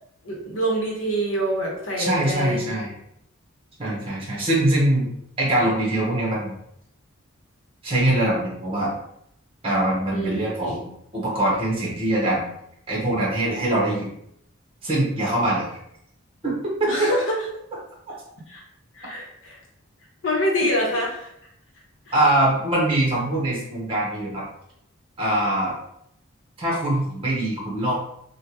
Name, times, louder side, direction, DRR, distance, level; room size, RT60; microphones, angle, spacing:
voice 1, 0.2-2.8 10.1-10.8 16.9-17.4 18.5-18.6 18.9-19.6 20.2-21.3 22.1-22.2, equal, 65° left, -2 dB, 0.9 m, -26 dB
voice 2, 2.0-2.9 3.8-6.5 7.8-8.9 9.6-12.5 12.9-14.1 14.8-15.8 16.4-17.1 22.1-24.4 25.2-25.7 26.6-27.9, right 1 dB, 25° right, -5 dB, 0.9 m, -23 dB
3.3 x 2.2 x 2.9 m, 0.74 s
head